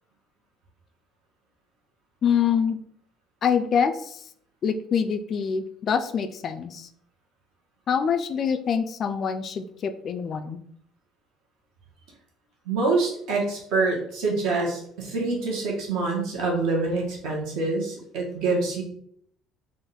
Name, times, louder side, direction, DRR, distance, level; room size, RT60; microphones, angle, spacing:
voice 1, 2.2-2.8 3.4-4.2 4.6-6.9 7.9-10.6, left 7 dB, 35° left, 9 dB, 0.3 m, -25 dB
voice 2, 12.6-18.8, right 3 dB, 70° right, -1 dB, 1.4 m, -26 dB
3.7 x 2.5 x 4.1 m, 0.66 s
cardioid pair, 150°, 0 cm